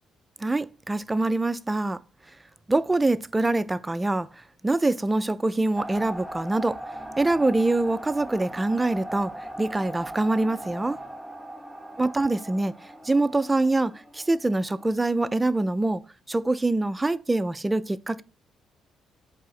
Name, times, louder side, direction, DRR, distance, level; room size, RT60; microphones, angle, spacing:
voice 1, 0.4-2.0 2.7-4.3 4.6-6.8 7.2-9.3 9.6-11.0 12.0-12.7 13.0-16.0 16.3-18.2, right 2 dB, 20° right, 0.3 m, -24 dB
sound 1, 5.7-14.8, right 1 dB, ahead, 0.9 m, -39 dB
4.8 x 2.6 x 4.1 m
hypercardioid pair, 55°, 0 cm